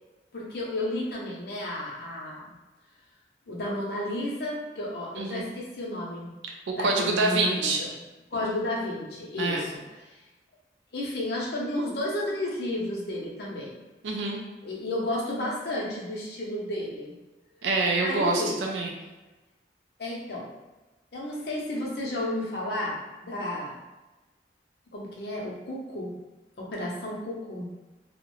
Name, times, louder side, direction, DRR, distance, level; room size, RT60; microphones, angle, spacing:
voice 1, 0.3-2.6 3.5-6.3 6.7-8.0 8.3-10.2 10.9-13.7 14.6-17.2 18.0-18.6 20.0-20.5 21.1-23.8 24.9-26.1 26.6-27.7, left 1 dB, 60° left, -3 dB, 0.6 m, -32 dB
voice 2, 6.8-7.8 9.4-9.6 14.0-14.4 17.6-18.9, right 3 dB, 85° right, 1 dB, 0.3 m, -26 dB
2.4 x 2.1 x 3.0 m, 1.1 s
head